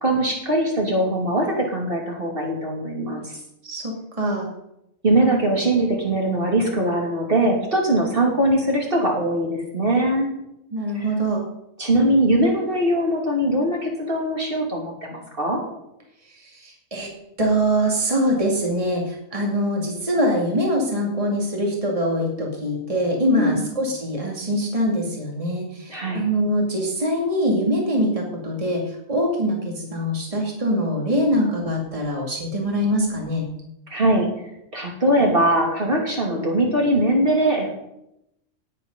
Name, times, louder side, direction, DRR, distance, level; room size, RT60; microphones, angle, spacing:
voice 1, 0.0-3.4 5.0-10.3 10.9-11.1 11.8-15.6 23.3-23.6 25.9-26.3 33.9-34.3 34.7-37.7, right 1 dB, 45° right, -1 dB, 2.9 m, -21 dB
voice 2, 3.6-4.5 10.7-11.4 16.3-17.1 17.4-33.5, equal, 25° right, -1 dB, 2.5 m, -23 dB
18.0 x 8.5 x 5.4 m, 0.84 s
omnidirectional pair, 1.3 m